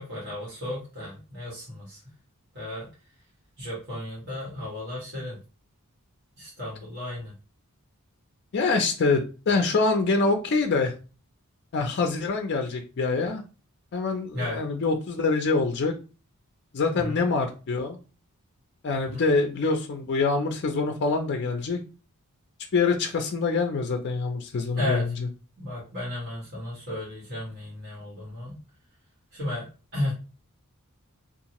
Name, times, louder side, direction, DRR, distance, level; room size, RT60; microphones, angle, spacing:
voice 1, 0.0-2.0 2.5-2.9 3.6-5.4 6.4-7.3 14.3-14.6 16.9-17.2 19.1-19.2 24.7-25.0 25.6-28.6 29.3-30.1, left 1 dB, 50° right, -7 dB, 1.5 m, -34 dB
voice 2, 8.5-10.9 11.7-13.4 13.9-15.9 16.7-18.0 18.8-21.8 22.7-25.3, left 4 dB, 50° left, 4 dB, 0.4 m, -25 dB
2.8 x 2.4 x 2.9 m, 0.33 s
head